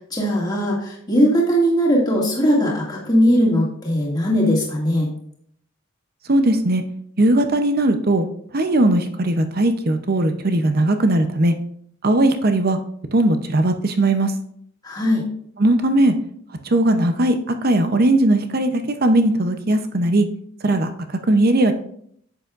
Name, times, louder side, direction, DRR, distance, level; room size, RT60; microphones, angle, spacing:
voice 1, 0.1-5.1 14.8-15.2, equal, 20° left, -4 dB, 2.2 m, -19 dB
voice 2, 6.3-6.8 7.2-8.3 8.5-11.5 12.0-12.8 13.1-14.3 15.6-16.1 16.7-20.3 20.6-20.9 21.3-21.7, right 1 dB, 45° right, 7 dB, 0.7 m, -18 dB
10.0 x 7.7 x 2.5 m, 0.67 s
head